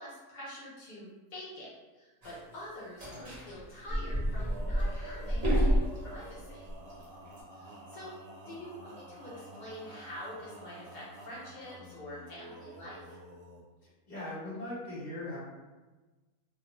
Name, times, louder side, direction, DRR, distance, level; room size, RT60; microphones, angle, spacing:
voice 1, 0.0-1.7 1.9-6.6 7.5-8.1 8.5-13.2, left 1 dB, 65° left, -8 dB, 0.4 m, -46 dB
sound 1, 2.2-2.4 3.0-6.3 6.7-7.4, equal, 35° right, 0.7 m, -29 dB
Male singing, 3.8-13.6, right 1 dB, 65° right, 1.0 m, -49 dB
voice 2, 13.8-15.4, left 1 dB, 35° left, -8 dB, 1.1 m, -40 dB
2.5 x 2.0 x 3.0 m, 1.2 s
omnidirectional pair, 1.6 m